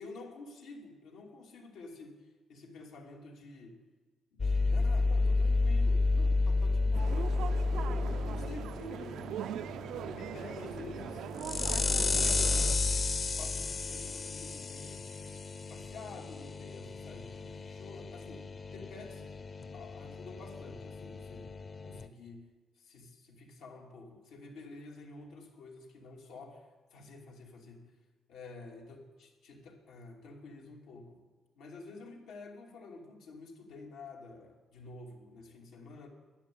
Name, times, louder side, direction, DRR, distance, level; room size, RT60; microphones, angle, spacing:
voice 1, 0.0-3.8 4.3-9.2 10.1-11.3 11.7-15.1 15.7-19.3 19.7-21.5 21.8-22.5 22.8-27.8 28.3-31.2 31.6-36.1, left 3 dB, 85° left, 0 dB, 2.7 m, -49 dB
sound 1, 4.4-22.1, left 3 dB, 40° left, 0.8 m, -32 dB
sound 2, 6.9-12.7, right 10 dB, 75° right, 0.4 m, -41 dB
11.5 x 11.0 x 8.5 m, 1.3 s
cardioid pair, 90°, 0 cm